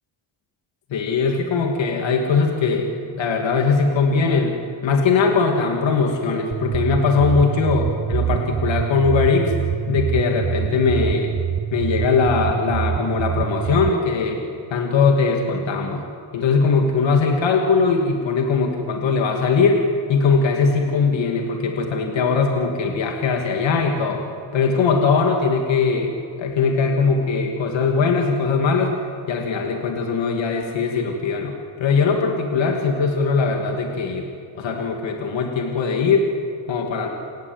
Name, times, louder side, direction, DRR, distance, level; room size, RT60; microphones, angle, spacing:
voice 1, 0.9-2.9 3.2-9.5 9.9-11.3 11.7-14.4 14.7-16.0 16.3-24.2 24.5-28.9 29.3-34.3 34.5-36.3 36.7-37.1, left 4 dB, 70° left, 2 dB, 2.8 m, -20 dB
sound 1, 6.5-13.9, right 8 dB, 30° right, 0.6 m, -25 dB
29.5 x 18.0 x 9.0 m, 2.7 s
cardioid pair, 130°, 47 cm